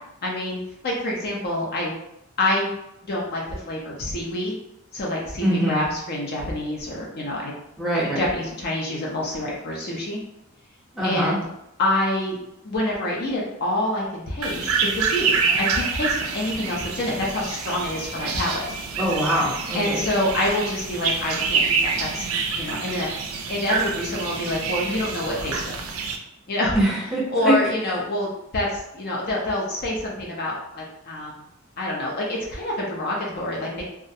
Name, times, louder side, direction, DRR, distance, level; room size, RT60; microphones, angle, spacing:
voice 1, 0.2-1.9 2.4-2.7 3.0-4.5 4.9-7.5 7.9-10.2 11.0-11.4 11.8-12.4 12.6-18.6 19.7-22.2 22.6-23.1 23.5-25.7 26.5-26.8 27.3-31.3 31.8-33.8, left 1 dB, 50° left, -3 dB, 0.5 m, -27 dB
voice 2, 5.4-5.8 7.8-8.3 10.9-11.4 19.0-20.0 26.7-27.5, right 1 dB, ahead, -7 dB, 0.7 m, -23 dB
sound 1, 14.4-26.2, right 5 dB, 85° right, 0.4 m, -27 dB
2.4 x 2.0 x 2.6 m, 0.83 s
head